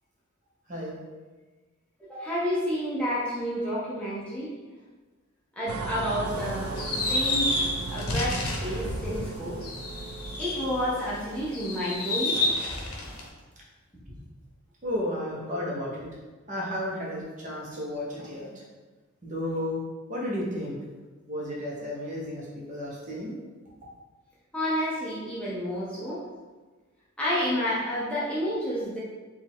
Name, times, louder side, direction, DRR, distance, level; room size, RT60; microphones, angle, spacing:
voice 1, 2.0-4.5 5.6-7.5 7.9-9.6 10.4-13.0 14.1-14.2 24.5-26.2 27.2-29.0, equal, 5° left, -8 dB, 0.6 m, -30 dB
sound 1, 5.7-11.7, right 3 dB, 70° right, 0.4 m, -37 dB
sound 2, 6.3-11.1 11.5-13.3, left 2 dB, 80° left, 0.7 m, -30 dB
voice 2, 14.8-16.1 16.5-18.5 19.2-19.8 20.1-20.8 21.3-23.4, left 1 dB, 35° right, -4 dB, 0.8 m, -33 dB
4.4 x 2.4 x 3.5 m, 1.3 s
head